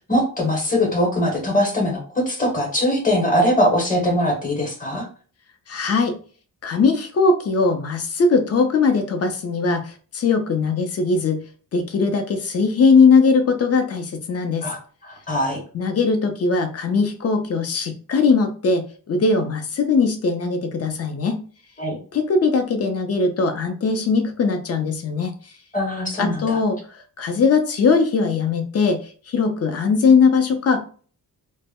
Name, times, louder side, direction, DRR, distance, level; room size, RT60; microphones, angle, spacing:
voice 1, 0.0-5.1 14.6-15.6 21.8-22.0 25.7-26.6, left 1 dB, 25° left, 0 dB, 0.9 m, -21 dB
voice 2, 5.7-6.1 6.6-11.4 11.7-14.7 15.7-21.4 22.1-25.3 26.2-29.0 29.3-30.8, left 4 dB, 45° left, 7 dB, 0.5 m, -20 dB
2.1 x 2.0 x 3.5 m, 0.41 s
wide cardioid pair, 130°, 35 cm